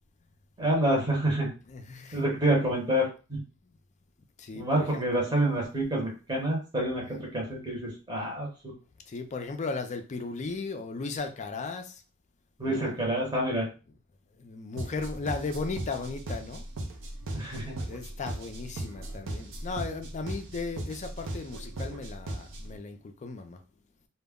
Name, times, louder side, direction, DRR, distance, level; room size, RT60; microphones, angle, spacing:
voice 1, 0.6-1.5 2.1-3.4 4.5-8.5 12.6-13.7 17.3-17.8, right 1 dB, 20° right, 0.8 m, -27 dB
voice 2, 1.7-2.3 4.4-5.0 9.1-12.0 12.6-13.0 14.4-16.6 17.8-23.6, left 4 dB, 30° left, 0.4 m, -36 dB
sound 1, 14.8-22.8, right 1 dB, 60° right, 0.5 m, -38 dB
2.2 x 2.0 x 3.5 m
head